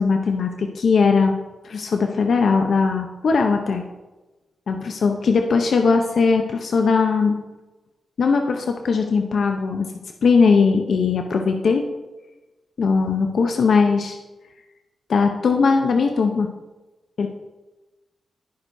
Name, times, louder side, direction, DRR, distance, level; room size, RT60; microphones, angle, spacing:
voice 1, 0.0-1.4 1.6-3.8 4.7-7.4 8.2-9.9 10.2-11.9 12.8-14.2 15.1-16.5 17.2-17.3, left 5 dB, 70° left, 4 dB, 0.7 m, -19 dB
18.5 x 6.4 x 2.7 m, 1.1 s
cardioid pair, 60°, 0 cm